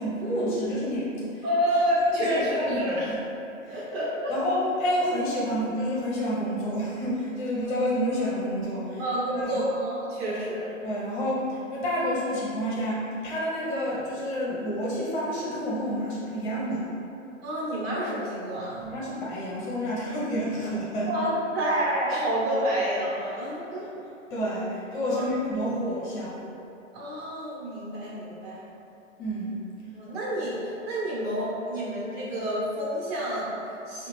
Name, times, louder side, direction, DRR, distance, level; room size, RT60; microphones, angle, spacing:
voice 1, 0.0-1.4 2.1-3.1 3.6-3.8 4.3-9.0 9.3-9.6 10.8-16.9 18.8-21.1 24.3-26.4 29.2-29.6, equal, 35° left, -6 dB, 1.0 m, -29 dB
voice 2, 1.4-3.1 3.7-4.3 9.0-10.7 17.4-18.9 21.0-23.9 25.1-25.3 26.9-28.6 29.9-34.1, equal, 50° right, -7 dB, 1.4 m, -28 dB
4.8 x 2.5 x 3.2 m, 2.9 s
figure-of-eight pair, 115°, 40 cm